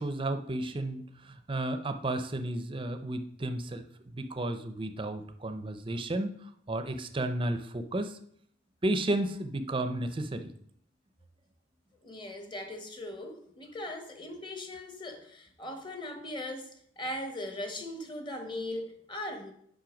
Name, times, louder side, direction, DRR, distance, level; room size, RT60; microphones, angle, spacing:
voice 1, 0.0-3.8 4.1-6.4 6.7-8.2 8.8-10.5, right 1 dB, 25° right, 0.6 m, -32 dB
voice 2, 12.0-19.5, left 1 dB, 25° left, 1.2 m, -39 dB
7.5 x 5.4 x 5.2 m
head